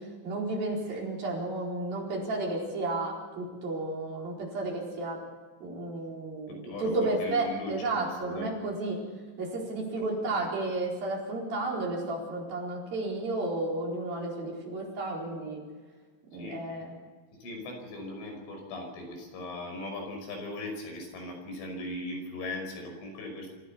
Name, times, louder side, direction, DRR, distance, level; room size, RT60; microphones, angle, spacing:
voice 1, 0.2-5.2 5.6-9.0 9.4-15.6 16.3-16.9, right 2 dB, 50° right, -2 dB, 6.1 m, -32 dB
voice 2, 6.5-8.5 9.9-10.5 16.3-16.6 17.4-23.5, left 1 dB, 85° left, 3 dB, 8.0 m, -39 dB
26.0 x 16.0 x 7.0 m, 1.5 s
omnidirectional pair, 5.4 m